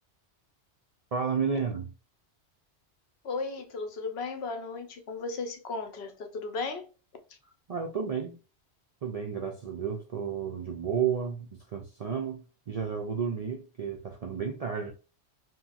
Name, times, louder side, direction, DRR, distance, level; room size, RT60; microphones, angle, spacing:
voice 1, 1.1-1.9 7.7-8.4 9.0-14.9, right 6 dB, 65° right, 0.3 m, -32 dB
voice 2, 3.2-6.9, left 3 dB, 65° left, 0.9 m, -35 dB
2.9 x 2.8 x 2.3 m
omnidirectional pair, 1.2 m